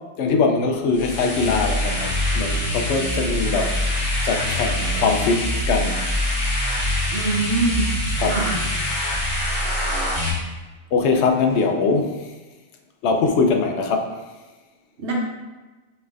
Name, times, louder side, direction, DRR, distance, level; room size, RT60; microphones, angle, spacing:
voice 1, 0.2-6.1 8.2-8.5 10.9-12.2 13.0-14.1, left 4 dB, 75° left, 3 dB, 0.8 m, -22 dB
sound 1, 0.9-10.3, left 1 dB, 40° left, 1.1 m, -24 dB
voice 2, 7.1-7.9 8.3-8.6 15.0-15.1, right 3 dB, 70° right, -3 dB, 1.2 m, -23 dB
5.5 x 3.3 x 2.4 m, 1.2 s
omnidirectional pair, 1.2 m